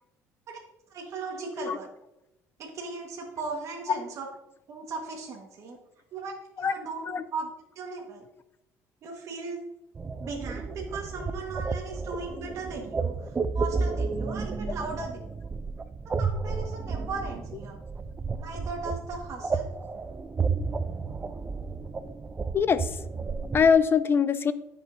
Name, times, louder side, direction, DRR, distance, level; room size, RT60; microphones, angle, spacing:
voice 1, 0.9-1.9 2.6-4.2 4.7-5.8 6.1-7.5 7.7-8.3 9.0-9.6 10.2-15.3 16.2-17.8 18.4-19.6, right 4 dB, 55° right, -1 dB, 1.6 m, -37 dB
sound 1, 9.9-23.7, right 4 dB, 25° right, 0.5 m, -32 dB
voice 2, 22.5-22.9 23.5-24.5, left 6 dB, 35° left, 14 dB, 0.5 m, -22 dB
14.5 x 5.5 x 2.7 m, 0.87 s
cardioid pair, 100°, 6 cm